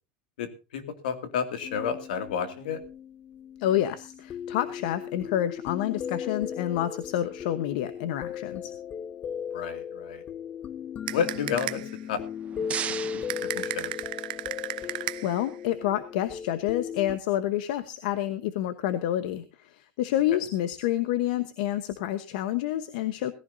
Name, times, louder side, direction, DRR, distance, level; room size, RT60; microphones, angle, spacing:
voice 1, 0.4-2.8 9.5-10.2 11.1-11.8 12.1-12.2 13.1-13.9, left 7 dB, 85° left, 9 dB, 2.4 m, -31 dB
sound 1, 1.6-17.2, left 8 dB, 30° left, 0.7 m, -37 dB
voice 2, 3.6-8.7 14.8-23.3, left 12 dB, 70° left, 12 dB, 1.1 m, -28 dB
sound 2, 11.1-12.0 13.3-15.5, right 17 dB, 80° right, 0.7 m, -35 dB
sound 3, 12.2-14.4, right 9 dB, 30° right, 0.7 m, -37 dB
17.5 x 15.5 x 2.7 m, 0.31 s
supercardioid pair, 130°, 5 cm